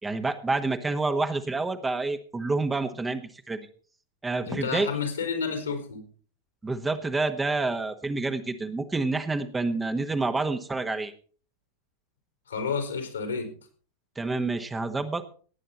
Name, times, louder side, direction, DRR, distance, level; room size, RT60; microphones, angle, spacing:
voice 1, 0.0-3.6 4.2-4.9 6.6-11.1 14.2-15.2, right 3 dB, 15° right, 7 dB, 1.4 m, -28 dB
voice 2, 4.5-6.0 12.5-13.5, left 5 dB, 75° left, 5 dB, 4.0 m, -30 dB
18.5 x 9.2 x 4.3 m, 0.43 s
figure-of-eight pair, 90°, 0 cm